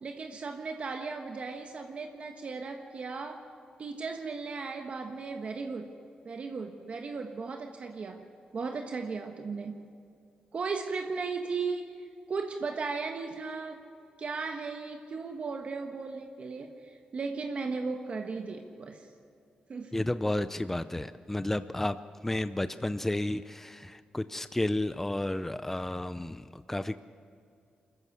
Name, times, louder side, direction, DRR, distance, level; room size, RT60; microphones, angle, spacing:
voice 1, 0.0-3.4 3.8-5.9 6.2-8.2 8.5-9.7 10.5-13.8 14.2-19.1 19.7-20.0, right 4 dB, 55° right, 4 dB, 1.3 m, -36 dB
voice 2, 19.9-22.0 22.2-27.0, left 1 dB, 10° left, 12 dB, 0.6 m, -32 dB
23.5 x 13.5 x 8.3 m, 2.4 s
cardioid pair, 75°, 3 cm